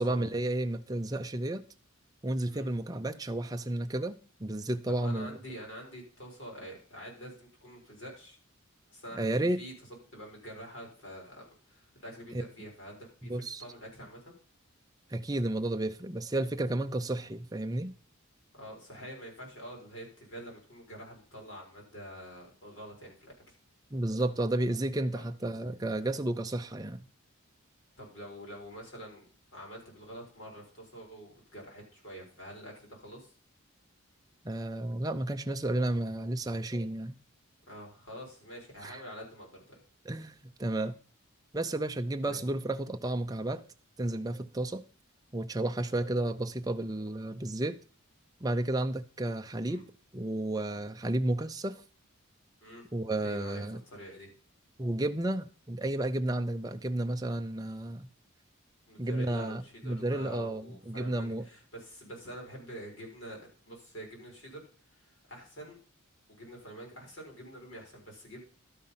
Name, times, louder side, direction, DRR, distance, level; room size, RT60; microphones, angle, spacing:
voice 1, 0.0-1.6 2.2-5.4 9.1-9.6 13.2-13.6 15.1-17.9 23.9-27.0 34.4-37.2 38.8-39.0 40.1-40.3 40.6-41.0 41.5-43.6 44.0-44.8 45.3-47.8 48.4-49.8 50.1-51.8 52.9-53.8 54.8-58.1 59.0-61.4, right 1 dB, 15° right, 0.6 m, -32 dB
voice 2, 4.9-8.4 8.9-9.7 10.1-14.4 18.5-23.5 25.1-25.2 28.0-29.2 29.5-33.3 37.7-39.8 42.2-42.4 49.6-49.8 52.6-52.9 53.2-54.3 58.9-63.4 63.7-64.6 64.9-65.8 66.3-68.4, equal, 60° left, 4.6 m, -46 dB
12.0 x 5.4 x 5.6 m
head